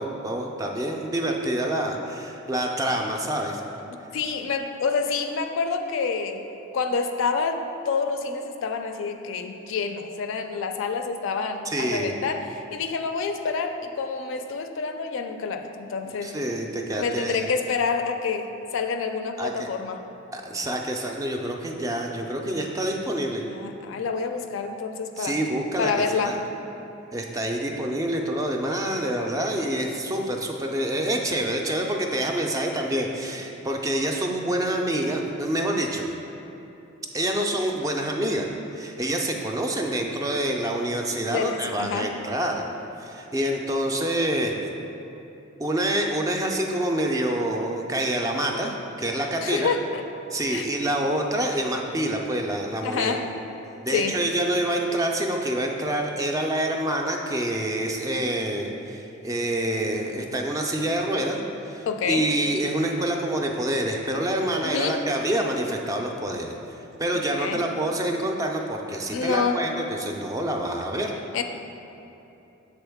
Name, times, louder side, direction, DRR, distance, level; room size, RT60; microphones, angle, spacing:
voice 1, 0.0-3.6 11.7-12.1 16.2-17.5 19.4-19.7 20.3-23.4 25.2-26.4 27.1-36.1 37.1-38.4 38.7-42.6 43.0-44.5 45.6-48.7 49.0-49.7 50.3-53.1 53.8-66.5 67.0-71.1, right 1 dB, 15° right, 2 dB, 0.3 m, -27 dB
voice 2, 4.1-6.4 6.7-7.6 7.9-16.3 17.0-20.0 23.5-25.4 25.8-26.4 41.3-42.1 49.4-50.0 50.5-50.7 52.8-53.3 53.9-54.2 61.9-62.3 64.6-65.0 67.3-67.6 69.1-69.6 71.3-71.4, left 5 dB, 65° left, 6 dB, 0.4 m, -27 dB
7.1 x 3.8 x 3.5 m, 2.9 s
head